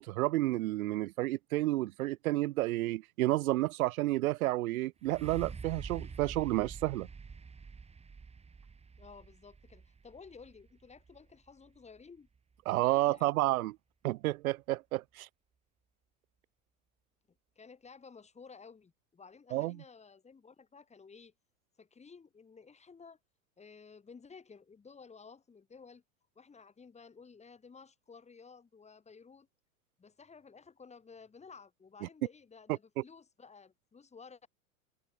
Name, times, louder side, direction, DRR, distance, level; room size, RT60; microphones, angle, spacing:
voice 1, 0.0-7.1 12.7-13.7 14.0-15.3 19.5-19.8 33.0-33.1, right 17 dB, 90° right, 0.5 m, -31 dB
sound 1, 5.0-12.8 13.4-13.5, right 5 dB, 15° right, 5.1 m, -47 dB
voice 2, 9.0-12.3 12.9-13.3 17.6-21.3 21.8-23.2 23.6-26.0 26.3-29.5 30.0-34.5, left 5 dB, 15° left, 7.9 m, -54 dB
supercardioid pair, 125°, 42 cm